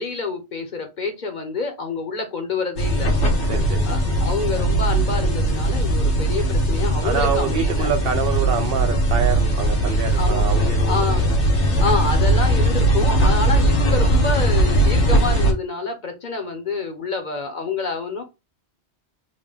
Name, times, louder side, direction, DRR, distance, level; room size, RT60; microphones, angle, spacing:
voice 1, 0.0-3.1 3.8-7.9 10.2-10.4 10.8-11.3 11.8-18.2, left 4 dB, 50° left, 0.8 m, -27 dB
sound 1, 2.8-15.5, right 1 dB, 90° left, 1.4 m, -19 dB
voice 2, 3.5-3.9 7.0-11.3, right 6 dB, 65° right, 0.7 m, -26 dB
3.9 x 2.1 x 3.4 m
omnidirectional pair, 1.1 m